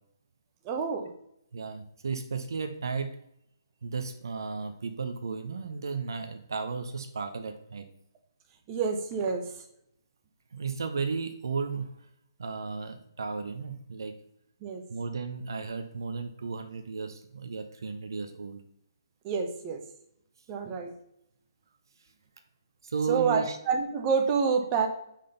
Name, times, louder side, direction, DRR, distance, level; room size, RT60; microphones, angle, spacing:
voice 1, 0.6-1.1 8.7-9.4 14.6-14.8 19.2-19.8 20.5-20.9 23.1-24.9, right 5 dB, 25° right, 3 dB, 1.0 m, -27 dB
voice 2, 1.5-3.2 3.8-7.8 10.5-11.9 12.4-14.1 14.9-18.6 22.8-23.6, right 4 dB, 60° right, 7 dB, 0.8 m, -34 dB
5.8 x 5.0 x 5.4 m, 0.75 s
figure-of-eight pair, 135°, 2 cm